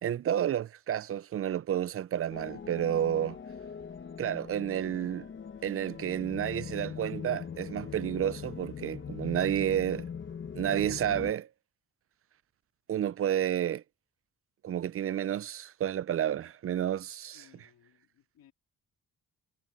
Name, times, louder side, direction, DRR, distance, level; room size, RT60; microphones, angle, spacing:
voice 1, 0.0-3.4 4.2-5.3 5.6-10.1 10.5-11.5 12.9-13.8 14.6-17.5, right 10 dB, 40° right, 0.4 m, -30 dB
sound 1, 2.3-11.3, left 7 dB, 35° left, 0.9 m, -41 dB
voice 2, 16.9-18.5, left 10 dB, 75° left, 2.3 m, -63 dB
wide cardioid pair, 150°, 36 cm